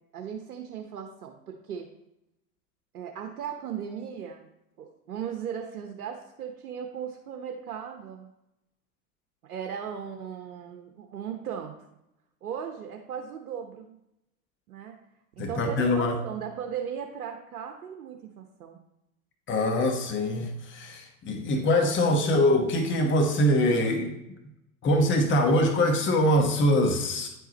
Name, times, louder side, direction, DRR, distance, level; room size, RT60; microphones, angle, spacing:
voice 1, 0.1-1.9 2.9-4.4 4.8-8.3 9.4-11.7 12.4-14.0 14.7-15.0 15.4-18.8, right 8 dB, 85° right, 3 dB, 0.9 m, -37 dB
voice 2, 15.4-16.1 19.5-24.1 24.8-27.3, left 1 dB, 25° left, 4 dB, 1.1 m, -23 dB
9.8 x 4.8 x 4.0 m, 0.88 s
hypercardioid pair, 95°, 45 cm